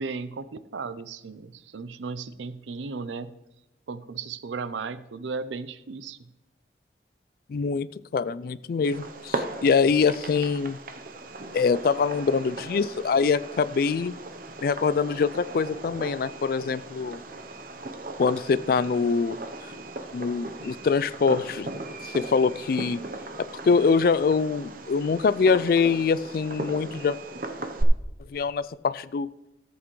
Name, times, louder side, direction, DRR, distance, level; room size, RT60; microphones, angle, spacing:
voice 1, 0.0-3.3 3.9-6.2, right 4 dB, 80° right, 15 dB, 0.5 m, -35 dB
voice 2, 7.5-10.8 11.5-14.1 14.6-17.2 18.2-19.4 20.1-21.7 22.0-23.0 23.4-27.2 28.3-29.3, left 5 dB, 50° left, 17 dB, 0.3 m, -24 dB
Fireworks, 8.8-27.8, right 2 dB, 50° right, 0.8 m, -37 dB
14.0 x 8.1 x 3.1 m, 0.95 s
head